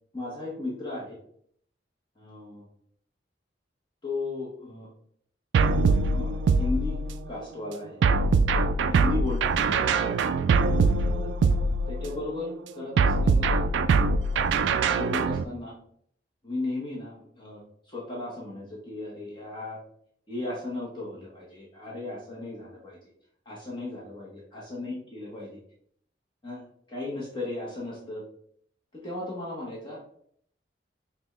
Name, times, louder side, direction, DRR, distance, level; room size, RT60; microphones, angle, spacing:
voice 1, 0.1-1.2 2.2-2.7 4.0-4.9 6.1-7.0 7.3-8.4 8.9-10.4 11.0-11.3 11.9-13.6 14.3-15.7 16.4-17.6 17.9-19.8 20.3-23.0 23.5-25.5 26.4-26.6 26.9-28.2 28.9-30.0, left 2 dB, 25° left, -5 dB, 0.9 m, -36 dB
sound 1, 5.5-7.3 8.0-12.2 13.0-15.4, right 4 dB, 85° right, 0.3 m, -23 dB
5.9 x 2.3 x 3.1 m, 0.66 s
head